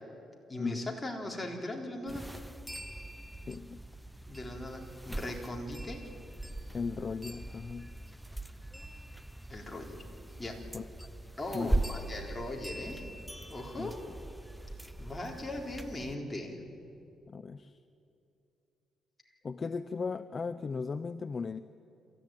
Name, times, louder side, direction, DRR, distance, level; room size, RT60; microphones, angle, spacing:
voice 1, 0.5-2.3 4.3-6.0 9.5-10.0 10.4-10.6 11.4-13.1 13.5-14.0 15.0-16.6, left 1 dB, 15° left, 0 dB, 3.9 m, -39 dB
sound 1, 2.1-16.2, right 1 dB, 5° right, 0.7 m, -40 dB
voice 2, 3.5-3.8 6.7-7.9 10.7-11.1 11.5-11.8 13.8-14.2 17.3-17.8 19.4-21.6, left 5 dB, 40° left, 12 dB, 0.6 m, -37 dB
27.5 x 14.5 x 9.1 m, 2.7 s
cardioid pair, 90°, 0 cm